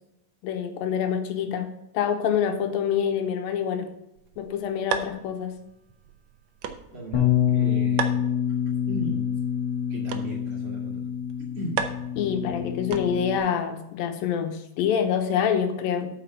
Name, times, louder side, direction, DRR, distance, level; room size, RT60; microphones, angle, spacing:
voice 1, 0.4-1.7 1.9-3.9 4.4-5.5 12.2-16.1, left 8 dB, 85° left, 6 dB, 2.7 m, -26 dB
sound 1, 4.2-13.5, right 7 dB, 75° right, 1.6 m, -37 dB
voice 2, 6.9-8.6 8.9-9.3 9.9-11.1 11.5-11.8, right 1 dB, 40° right, -3 dB, 3.1 m, -36 dB
Bass guitar, 7.1-13.4, left 9 dB, 55° left, 3.0 m, -26 dB
8.5 x 6.3 x 5.7 m, 0.83 s
omnidirectional pair, 4.1 m